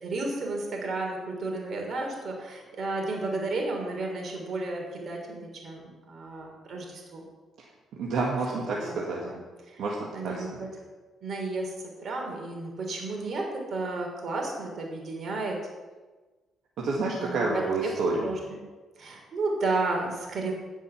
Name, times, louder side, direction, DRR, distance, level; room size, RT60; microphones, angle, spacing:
voice 1, 0.0-7.2 8.8-9.4 9.7-9.8 10.1-10.7 11.2-11.7 12.0-15.6 17.2-17.4 18.2-18.6 19.0-20.5, right 3 dB, 55° right, 1 dB, 3.3 m, -32 dB
voice 2, 8.0-9.2 9.8-10.0 10.2-10.7 16.8-18.3, right 3 dB, 75° right, -3 dB, 1.9 m, -29 dB
16.0 x 5.5 x 5.9 m, 1.3 s
cardioid pair, 90°, 0 cm